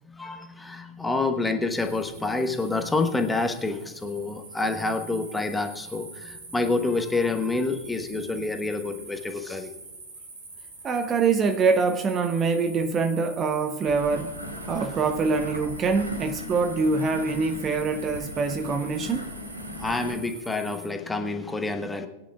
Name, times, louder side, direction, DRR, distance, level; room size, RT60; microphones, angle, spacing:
voice 1, 0.1-9.7 14.8-14.9 19.7-22.1, left 3 dB, 10° left, 1.2 m, -28 dB
sound 1, 1.7-20.9, right 3 dB, 70° right, 4.9 m, -45 dB
voice 2, 10.8-14.3 14.7-19.3, right 4 dB, 25° right, 0.7 m, -24 dB
sound 2, 13.8-20.2, left 1 dB, 90° right, 2.0 m, -38 dB
21.0 x 10.0 x 2.4 m
figure-of-eight pair, 90°, 0 cm